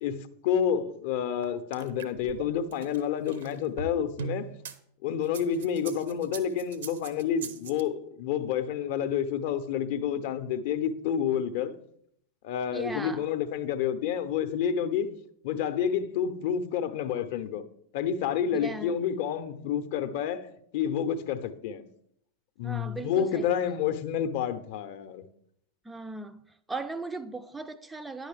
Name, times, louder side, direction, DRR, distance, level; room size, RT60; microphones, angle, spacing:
voice 1, 0.0-4.5 5.0-11.8 12.4-15.1 15.4-17.6 17.9-20.5 20.7-21.8 22.6-25.2, left 8 dB, 50° left, 0.6 m, -29 dB
sound 1, 1.4-4.8 5.2-7.8, right 7 dB, 60° right, 0.6 m, -40 dB
voice 2, 12.7-13.2 18.5-19.0 22.6-23.5 25.9-26.4 26.7-28.3, right 3 dB, 10° right, 0.4 m, -37 dB
9.9 x 6.4 x 3.3 m
figure-of-eight pair, 90°, 0 cm